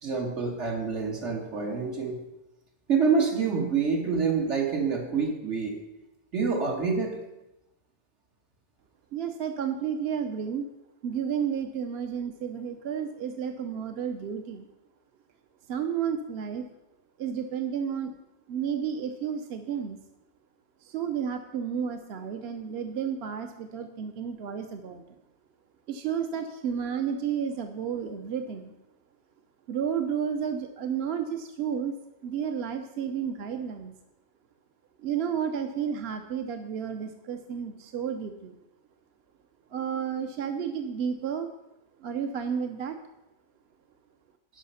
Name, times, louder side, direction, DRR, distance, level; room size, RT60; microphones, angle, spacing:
voice 1, 0.0-2.2 2.9-5.7 6.3-7.2, right 5 dB, 85° right, 0 dB, 2.1 m, -27 dB
voice 2, 9.1-10.6 11.0-14.7 15.7-16.7 17.2-18.1 18.5-20.0 20.8-25.0 25.9-28.7 29.7-31.9 32.2-33.9 35.0-38.5 39.7-41.5 42.0-43.0, right 7 dB, 65° right, 6 dB, 0.9 m, -31 dB
11.0 x 5.5 x 5.6 m, 0.94 s
omnidirectional pair, 1.2 m